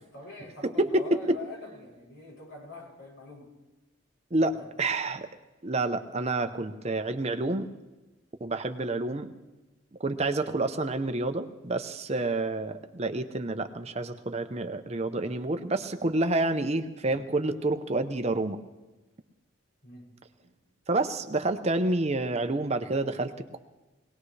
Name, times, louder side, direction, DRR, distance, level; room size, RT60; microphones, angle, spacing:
voice 1, 0.0-3.5 4.5-4.7 19.8-20.1 20.4-20.5, left 2 dB, 65° left, -4 dB, 7.2 m, -44 dB
voice 2, 0.6-1.4 4.3-5.3 5.6-7.7 8.4-9.3 10.0-18.6 20.9-23.6, right 2 dB, 30° right, 8 dB, 0.7 m, -28 dB
23.0 x 18.5 x 3.3 m, 1.1 s
head